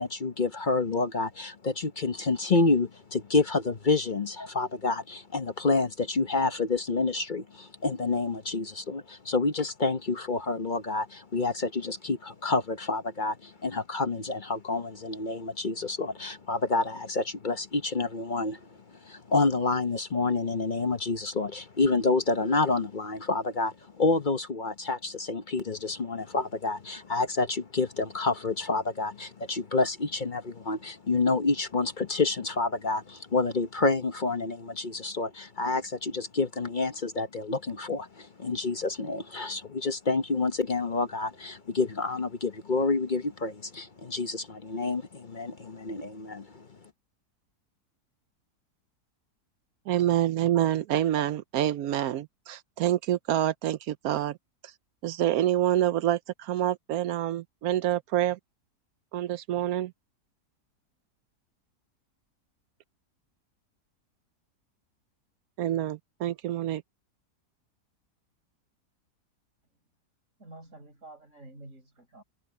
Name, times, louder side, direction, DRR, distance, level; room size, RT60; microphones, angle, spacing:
voice 1, 0.0-18.7 19.0-46.7, left 3 dB, 35° left, 0.9 m, -28 dB
voice 2, 49.9-54.4 54.6-54.7 55.0-58.4 59.1-59.9 65.6-66.8, right 12 dB, 70° right, 1.0 m, -27 dB
voice 3, 70.4-72.2, right 2 dB, 50° right, 5.9 m, -49 dB
omnidirectional pair, 1.7 m